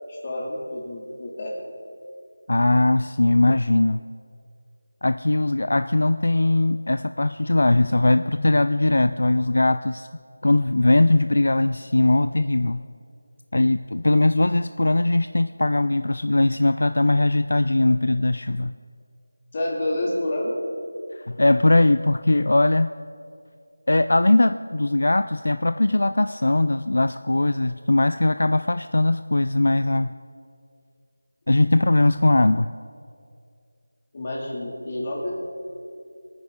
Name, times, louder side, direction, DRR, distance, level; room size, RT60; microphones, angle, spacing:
voice 1, 0.1-1.5 19.5-20.5 34.1-35.3, left 1 dB, 25° left, -3 dB, 2.5 m, -28 dB
voice 2, 2.5-4.0 5.0-10.1 10.4-12.8 13.5-18.7 21.2-22.9 23.9-30.1 31.5-32.7, left 2 dB, 60° left, 11 dB, 0.4 m, -20 dB
23.5 x 9.4 x 3.8 m, 2.4 s
figure-of-eight pair, 175°, 0 cm